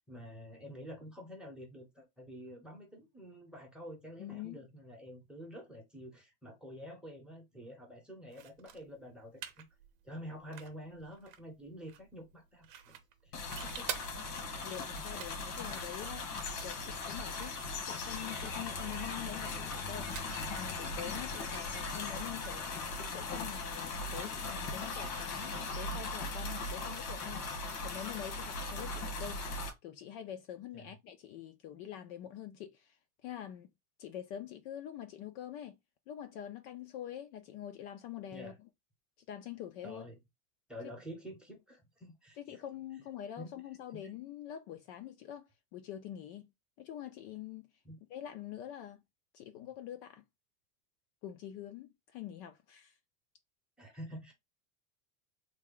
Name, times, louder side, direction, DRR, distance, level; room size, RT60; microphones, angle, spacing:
voice 1, 0.1-9.6 10.0-13.3 13.6-14.1 30.7-30.9 38.3-38.5 39.8-40.2 40.7-42.6 43.4-43.5 47.8-48.0 53.8-54.3, equal, ahead, 0.8 m, -48 dB
voice 2, 4.2-4.7 14.6-16.3 16.6-20.1 20.5-29.4 29.8-33.0 33.2-33.7 34.0-35.8 36.1-38.5 39.3-40.0 42.4-46.5 46.8-47.7 48.1-49.0 49.3-50.2 51.2-52.9, left 11 dB, 50° left, 0.5 m, -45 dB
sound 1, 8.3-23.4, right 9 dB, 40° right, 0.8 m, -51 dB
sound 2, 13.3-29.7, left 3 dB, 85° left, 1.6 m, -39 dB
3.4 x 2.2 x 3.7 m
supercardioid pair, 150°, 47 cm